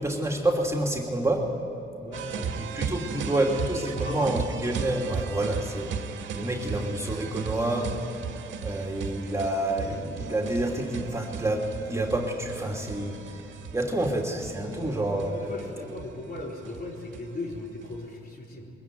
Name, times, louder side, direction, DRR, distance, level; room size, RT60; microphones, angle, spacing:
voice 1, 0.0-1.5 2.6-6.0 6.3-7.9 8.6-13.4 13.7-15.5, right 1 dB, 15° right, 0 dB, 2.8 m, -28 dB
voice 2, 2.0-2.6 3.9-4.3 14.7-15.0 15.3-18.7, left 2 dB, 50° left, -1 dB, 4.3 m, -38 dB
sound 1, 2.1-18.0, right 6 dB, 75° right, 1.9 m, -36 dB
22.0 x 15.5 x 9.3 m, 3.0 s
cardioid pair, 90°, 20 cm